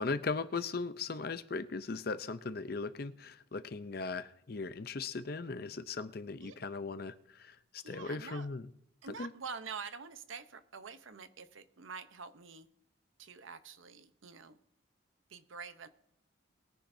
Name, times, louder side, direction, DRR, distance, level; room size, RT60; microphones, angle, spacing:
voice 1, 0.0-8.7 9.2-9.3, left 4 dB, 50° left, 12 dB, 0.6 m, -38 dB
voice 2, 7.8-8.5 9.0-12.7 13.2-14.6 15.3-15.9, right 5 dB, 80° right, 11 dB, 0.8 m, -46 dB
21.5 x 10.0 x 2.7 m, 0.76 s
head